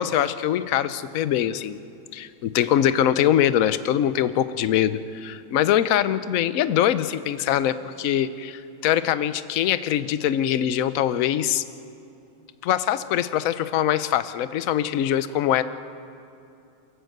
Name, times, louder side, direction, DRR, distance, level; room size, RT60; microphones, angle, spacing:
voice 1, 0.0-1.8 2.1-11.6 12.6-15.6, left 10 dB, 60° left, 13 dB, 0.9 m, -23 dB
29.0 x 13.0 x 8.0 m, 2.7 s
omnidirectional pair, 2.1 m